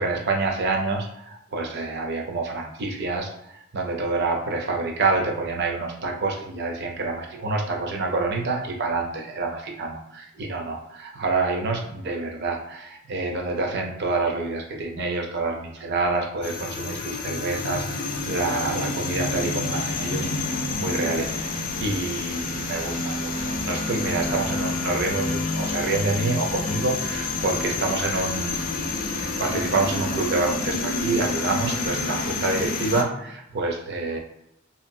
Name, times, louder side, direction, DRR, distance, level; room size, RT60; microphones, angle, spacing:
voice 1, 0.0-28.8 29.2-34.2, right 3 dB, 55° right, 2 dB, 0.6 m, -27 dB
sound 1, 16.4-33.0, left 3 dB, 45° left, 0.4 m, -28 dB
2.9 x 2.6 x 2.6 m, 0.80 s
head